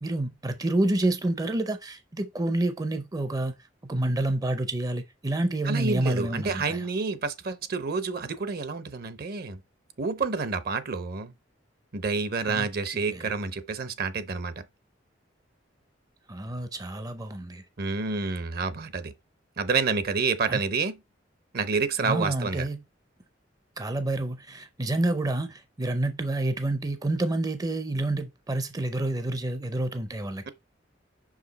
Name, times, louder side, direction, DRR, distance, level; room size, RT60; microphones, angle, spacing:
voice 1, 0.0-3.6 3.8-6.9 12.5-12.7 12.9-13.3 16.3-17.6 20.5-20.6 22.0-22.8 23.8-30.5, right 1 dB, 20° right, 0.5 m, -28 dB
voice 2, 5.6-9.6 10.0-11.3 11.9-14.5 17.8-19.1 19.6-21.0 21.5-22.7, right 4 dB, 55° right, 0.7 m, -28 dB
5.8 x 4.9 x 3.9 m
head